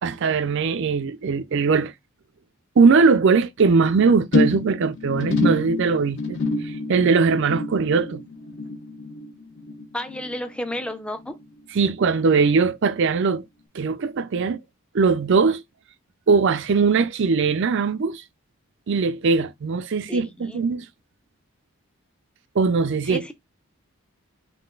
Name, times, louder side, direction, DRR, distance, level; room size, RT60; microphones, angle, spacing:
voice 1, 0.0-1.9 2.8-6.4 6.9-8.2 11.7-13.4 13.7-14.6 14.9-15.6 16.3-18.2 18.9-20.8 22.6-23.3, right 4 dB, 55° right, 0.4 m, -20 dB
sound 1, 4.3-10.9 11.2-11.6 11.9-12.0, left 3 dB, 55° left, 0.9 m, -27 dB
voice 2, 9.9-11.4 20.1-20.6 23.1-23.3, left 1 dB, 5° left, 0.5 m, -32 dB
3.8 x 3.1 x 3.8 m
head